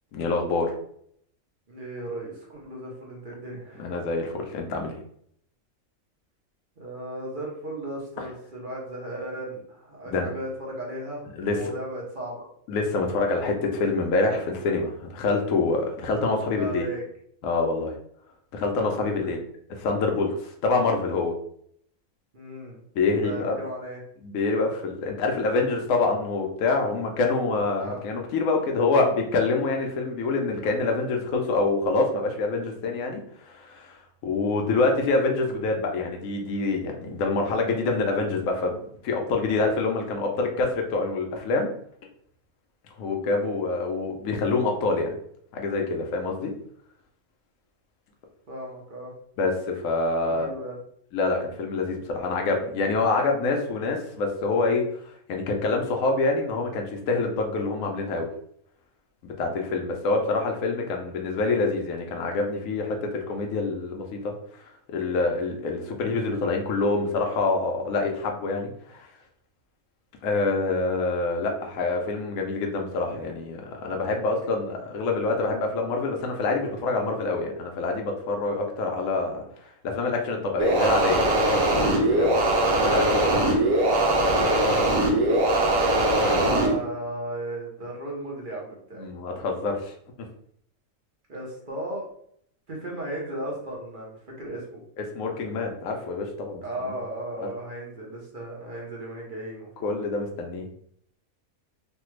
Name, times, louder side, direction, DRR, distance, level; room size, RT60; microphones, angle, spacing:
voice 1, 0.1-0.7 3.8-4.9 8.2-8.3 10.1-10.3 11.3-11.6 12.7-16.9 17.4-17.9 18.5-19.4 19.8-21.3 23.0-23.6 24.2-38.8 39.0-41.7 43.0-45.2 45.5-46.5 49.4-50.5 51.1-58.3 59.2-64.3 64.9-69.1 70.2-79.4 79.8-82.4 82.8-83.5 84.1-84.3 86.3-86.4 88.9-89.9 95.0-96.6 97.4-97.5 99.8-100.7, left 3 dB, 75° left, 2 dB, 1.0 m, -26 dB
voice 2, 1.7-3.9 6.8-12.4 16.6-17.0 18.9-19.3 22.3-22.8 23.2-24.0 27.8-28.0 48.5-49.1 50.2-50.8 86.2-89.1 91.3-92.1 92.7-94.8 96.6-99.9, right 1 dB, 45° right, -3 dB, 0.8 m, -35 dB
sound 1, 80.6-86.7, right 1 dB, 70° right, 1.1 m, -21 dB
3.2 x 2.3 x 3.1 m, 0.66 s
omnidirectional pair, 1.5 m